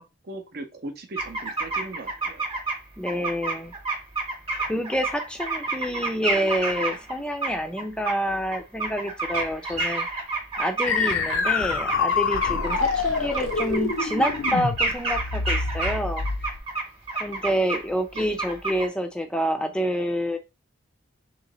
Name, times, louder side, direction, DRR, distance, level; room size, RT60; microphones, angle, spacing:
voice 1, 0.2-2.5 18.1-18.4, right 2 dB, 50° right, 6 dB, 0.6 m, -39 dB
sound 1, 1.2-2.8 3.1-7.1 7.4-8.1 8.5-17.8 18.1-18.9, right 3 dB, 30° right, 1.0 m, -29 dB
voice 2, 3.0-3.7 4.6-10.1 10.6-16.3 17.2-20.4, equal, 5° left, 6 dB, 0.4 m, -28 dB
sound 2, 10.9-16.6, left 5 dB, 70° left, 0.5 m, -26 dB
sound 3, 12.4-14.5, right 1 dB, 80° right, 0.8 m, -38 dB
3.1 x 3.1 x 3.8 m, 0.26 s
head